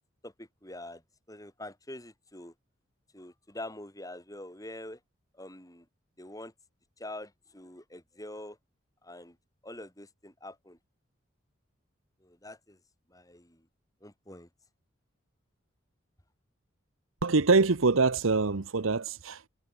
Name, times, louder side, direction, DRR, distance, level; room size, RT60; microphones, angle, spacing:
voice 1, 0.2-1.0 1.3-2.5 3.1-5.0 5.3-5.9 6.2-6.5 7.0-8.6 9.0-9.4 9.6-10.8 12.2-12.8 13.1-13.7 14.0-14.5, left 1 dB, 15° left, 7.9 m, -45 dB
voice 2, 17.2-19.5, right 4 dB, 85° right, 1.0 m, -24 dB
head